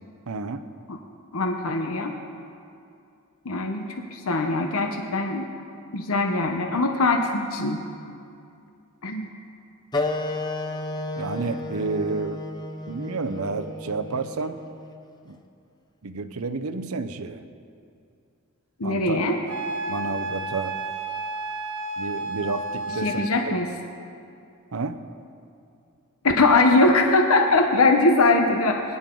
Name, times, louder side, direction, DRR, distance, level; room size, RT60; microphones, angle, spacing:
voice 1, 0.3-0.6 11.2-12.4 12.9-14.6 15.3-15.4 16.0-17.4 18.8-19.2 19.9-20.8 22.0-23.3 24.7-25.0, right 3 dB, 85° right, 9 dB, 0.7 m, -30 dB
voice 2, 1.3-2.1 3.4-5.5 5.9-7.8 9.0-9.3 18.8-19.4 23.0-23.7 26.2-28.8, left 2 dB, 80° left, 3 dB, 1.0 m, -21 dB
Wind instrument woodwind instrument, 9.9-15.0, left 2 dB, 20° left, 0.7 m, -32 dB
Wind instrument woodwind instrument 2, 19.5-23.4, right 2 dB, 65° right, 1.2 m, -31 dB
21.5 x 10.5 x 3.9 m, 2.5 s
head